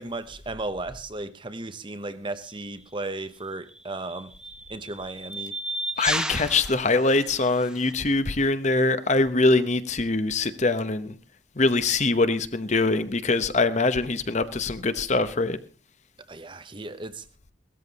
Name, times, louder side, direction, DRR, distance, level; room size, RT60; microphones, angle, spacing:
voice 1, 0.0-4.3 4.7-5.6 16.3-17.2, right 2 dB, 25° right, 0.8 m, -35 dB
sound 1, 2.5-2.7 3.7-7.9, right 1 dB, 5° right, 1.0 m, -34 dB
voice 2, 6.0-11.2 11.6-15.6, left 3 dB, 40° left, 0.9 m, -23 dB
17.0 x 13.5 x 4.1 m
head